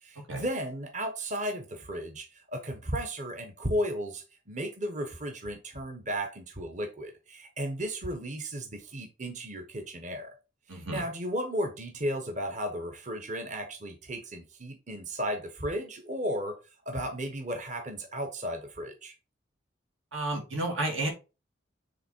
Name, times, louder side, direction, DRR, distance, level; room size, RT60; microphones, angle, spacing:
voice 1, 0.0-10.3 10.7-16.6 16.8-19.1, equal, 40° right, 1.0 m, -34 dB
voice 2, 10.7-11.0 20.1-21.1, right 2 dB, 80° right, 3.1 m, -31 dB
8.0 x 3.6 x 4.5 m
head